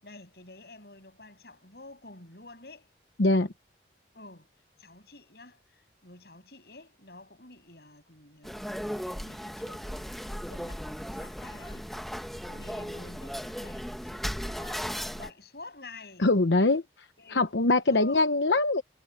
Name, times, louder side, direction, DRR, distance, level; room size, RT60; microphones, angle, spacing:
voice 1, 0.0-2.9 4.1-4.5 4.8-11.8 12.4-16.3 17.2-17.5 17.9-18.3, left 2 dB, 60° left, 7.5 m, -49 dB
voice 2, 3.2-3.5 16.2-16.8 17.3-18.8, left 2 dB, 85° left, 1.0 m, -23 dB
sound 1, 8.4-15.3, equal, ahead, 1.1 m, -36 dB
head